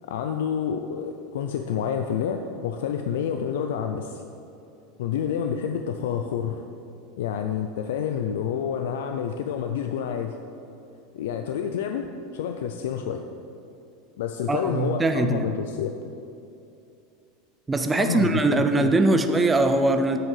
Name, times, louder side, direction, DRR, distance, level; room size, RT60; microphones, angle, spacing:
voice 1, 0.0-4.2 5.0-6.6 7.2-10.3 11.1-12.1 12.3-13.2 14.2-15.9 18.0-19.2, left 8 dB, 85° left, 6 dB, 0.5 m, -28 dB
voice 2, 14.5-15.5 17.7-20.2, right 2 dB, 10° right, 7 dB, 0.4 m, -22 dB
8.6 x 6.6 x 6.5 m, 2.6 s
supercardioid pair, 150°, 0 cm